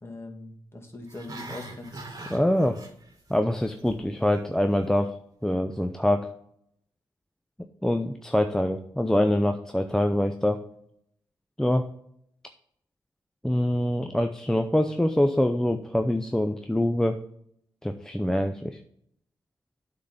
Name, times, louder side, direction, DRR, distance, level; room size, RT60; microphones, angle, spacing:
voice 1, 0.0-2.0, left 2 dB, 25° left, 2 dB, 2.1 m, -41 dB
Growling, 1.0-3.4 3.6-4.0 4.4-4.5, right 2 dB, 40° right, 2.0 m, -41 dB
voice 2, 2.3-2.8 3.3-5.1 5.4-6.3 7.8-10.6 11.6-11.9 13.4-17.2 17.8-18.8, left 1 dB, 5° left, 6 dB, 0.6 m, -24 dB
8.5 x 3.9 x 5.7 m, 0.70 s
supercardioid pair, 50°, 9 cm